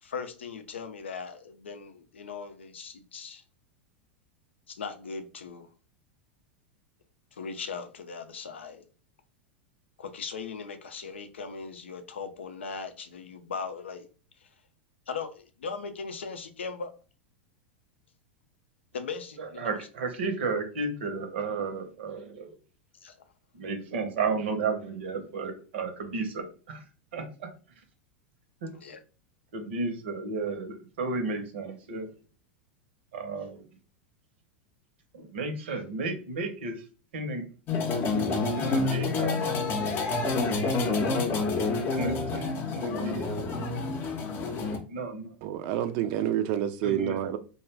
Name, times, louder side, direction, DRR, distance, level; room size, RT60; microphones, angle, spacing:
voice 1, 0.0-3.4 4.7-5.7 7.3-8.8 10.0-14.1 14.4-14.5 15.1-16.9 18.9-19.8 23.0-23.2 28.7-29.0, left 5 dB, 85° left, 0.4 m, -39 dB
voice 2, 19.4-22.5 23.5-26.8 27.1-27.3 28.6-28.7 29.5-32.1 33.1-33.6 35.1-36.8 37.1-37.4 38.0-39.4 41.9-43.2 43.7-44.1 44.9-45.3 46.8-47.2, right 3 dB, 70° right, 0.7 m, -33 dB
sound 1, 37.7-44.8, left 3 dB, 35° left, 0.6 m, -28 dB
voice 3, 45.4-47.4, right 11 dB, 50° right, 0.4 m, -28 dB
2.4 x 2.2 x 3.2 m
hypercardioid pair, 95°, 6 cm